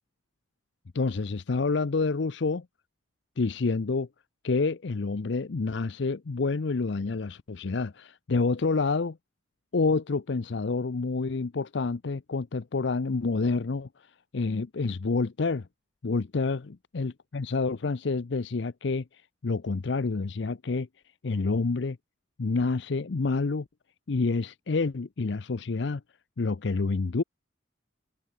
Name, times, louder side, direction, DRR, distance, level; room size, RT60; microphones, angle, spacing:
voice 1, 0.9-2.7 3.4-4.1 4.4-9.2 9.7-13.9 14.3-15.7 16.0-19.0 19.4-20.9 21.2-22.0 22.4-23.7 24.1-26.0 26.4-27.2, left 4 dB, 60° left, 0.6 m, -28 dB
head